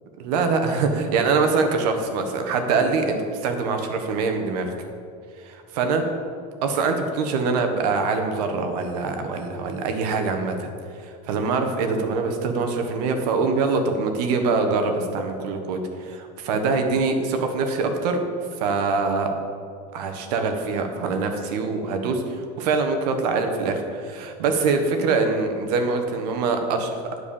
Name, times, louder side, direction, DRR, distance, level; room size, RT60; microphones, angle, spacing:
voice 1, 0.2-4.7 5.4-6.0 6.6-10.7 11.0-18.2 18.6-19.3 19.9-27.2, right 4 dB, 75° right, 5 dB, 1.4 m, -24 dB
11.0 x 4.8 x 7.1 m, 2.4 s
supercardioid pair, 135°, 20 cm